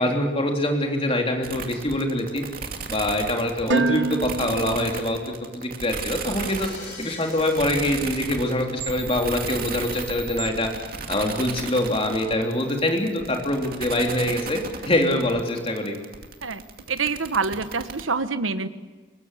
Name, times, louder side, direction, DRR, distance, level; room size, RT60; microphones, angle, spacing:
voice 1, 0.0-2.4 2.9-5.2 5.5-6.7 7.0-10.7 11.1-14.6 14.8-16.0, left 1 dB, 30° left, 2 dB, 3.4 m, -24 dB
sound 1, 1.4-18.0, right 5 dB, 50° right, 2.4 m, -35 dB
Dishes pots and pans, 3.7-5.8, right 3 dB, 65° right, 0.8 m, -27 dB
sound 2, 5.9-9.2, left 4 dB, 65° left, 5.8 m, -44 dB
voice 2, 16.9-18.7, right 4 dB, 85° right, 11 dB, 1.3 m, -26 dB
24.5 x 21.5 x 8.3 m, 1.3 s
head